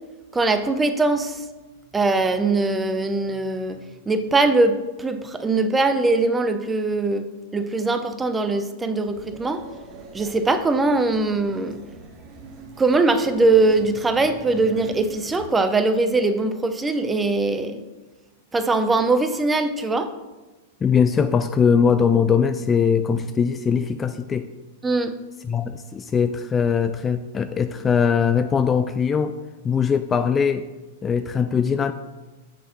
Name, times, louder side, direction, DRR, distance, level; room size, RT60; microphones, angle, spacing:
voice 1, 0.3-1.4 1.9-3.8 4.1-9.6 10.1-11.8 12.8-17.8 18.5-20.1 24.8-25.1, right 3 dB, 15° right, 10 dB, 0.6 m, -21 dB
sound 1, 9.1-15.5, right 3 dB, 40° right, 1.2 m, -43 dB
voice 2, 20.8-24.5 25.5-29.4 29.6-30.7 31.0-31.9, left 6 dB, 20° left, 10 dB, 0.3 m, -21 dB
6.6 x 4.0 x 6.4 m, 1.2 s
hypercardioid pair, 110°, 0 cm